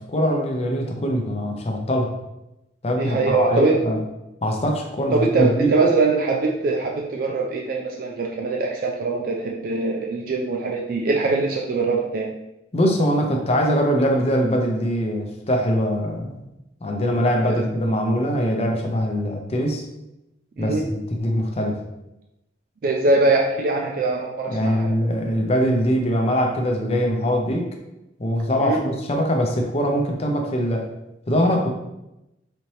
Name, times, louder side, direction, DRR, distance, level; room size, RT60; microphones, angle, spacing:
voice 1, 0.0-2.1 2.8-4.0 4.4-5.7 12.7-16.4 16.8-19.8 20.6-21.8 24.5-27.7 28.2-30.8 31.3-31.7, equal, 35° left, 2 dB, 0.6 m, -22 dB
voice 2, 3.0-3.8 5.1-12.3 17.2-17.6 20.6-20.8 22.8-24.9 28.6-28.8, right 3 dB, 55° right, 0 dB, 0.4 m, -22 dB
4.2 x 2.8 x 3.1 m, 0.92 s
head